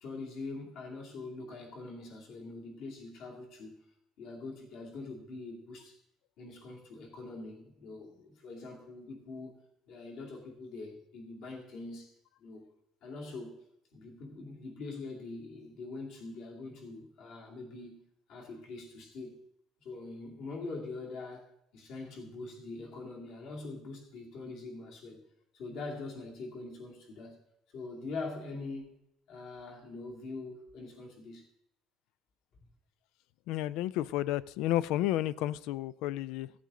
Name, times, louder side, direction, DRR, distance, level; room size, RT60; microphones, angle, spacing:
voice 1, 0.0-3.8 4.2-6.0 6.4-9.6 9.9-12.1 12.4-12.7 13.0-13.5 13.9-18.0 18.3-19.4 19.8-21.5 21.7-25.2 25.5-27.4 27.7-28.9 29.3-31.4, left 3 dB, 55° left, 0 dB, 2.4 m, -43 dB
voice 2, 33.5-36.5, left 14 dB, 70° left, 19 dB, 0.3 m, -31 dB
15.5 x 8.4 x 3.7 m, 0.80 s
cardioid pair, 170°, 0 cm